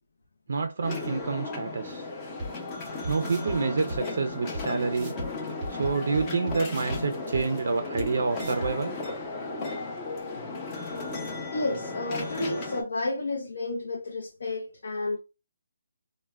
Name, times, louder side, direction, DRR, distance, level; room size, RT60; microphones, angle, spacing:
voice 1, 0.5-2.1 3.1-5.1 5.7-9.0, right 4 dB, 60° right, 0.3 m, -28 dB
sound 1, 0.8-12.8, left 3 dB, 20° left, 0.5 m, -35 dB
sound 2, 2.4-2.5 3.0-3.6 3.9-4.0 4.5-4.6 4.9-5.3 5.6-7.0 7.3-7.4 8.0-8.1 8.3-8.7, right 1 dB, 10° right, 0.8 m, -35 dB
voice 2, 11.5-15.2, left 2 dB, 80° left, 0.4 m, -31 dB
3.1 x 2.0 x 2.2 m
hypercardioid pair, 170°, 0 cm